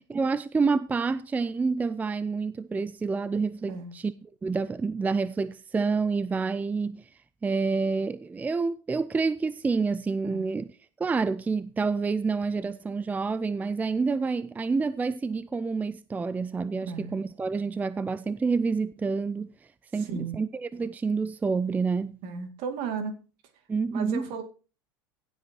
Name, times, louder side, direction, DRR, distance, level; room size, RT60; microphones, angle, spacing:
voice 1, 0.1-7.1 7.4-10.7 11.0-19.5 19.9-22.1 23.7-24.3, right 4 dB, 15° right, 0.4 m, -28 dB
voice 2, 16.8-17.2 20.0-20.4 22.2-23.1 23.9-24.4, right 5 dB, 55° right, 2.3 m, -35 dB
16.5 x 7.8 x 2.9 m
hypercardioid pair, 85°, 12 cm